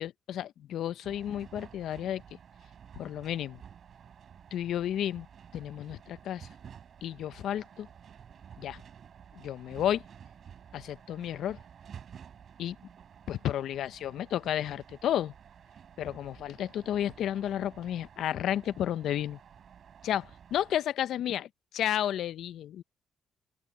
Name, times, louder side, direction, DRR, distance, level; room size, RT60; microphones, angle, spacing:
voice 1, 0.0-2.2 3.0-3.6 4.5-5.3 5.5-6.5 7.0-7.9 8.6-8.8 9.3-10.0 10.7-11.6 12.6-12.8 13.3-15.3 16.0-19.4 20.0-21.5 21.7-22.8, left 11 dB, 75° left, 0.5 m, -32 dB
sound 1, 1.0-20.8, right 8 dB, 60° right, 3.7 m, -52 dB
open air
cardioid pair, 90°, 0 cm